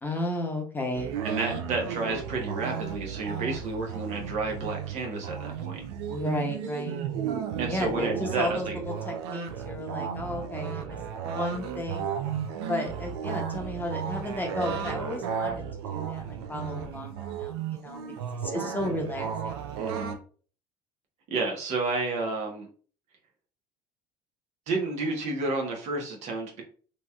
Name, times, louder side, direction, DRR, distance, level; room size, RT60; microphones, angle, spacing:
voice 1, 0.0-1.1 6.1-7.0 7.7-11.0 11.3-12.1 12.6-16.2 16.5-18.0 18.4-19.6, left 1 dB, 15° left, 2 dB, 0.8 m, -33 dB
sound 1, 0.9-20.1, right 7 dB, 85° right, 0.4 m, -34 dB
voice 2, 1.2-5.8 7.6-8.7 19.8-20.2 21.3-22.7 24.7-26.6, right 3 dB, 60° right, 1 dB, 1.0 m, -31 dB
3.0 x 2.8 x 2.3 m, 0.41 s
supercardioid pair, 80°, 13 cm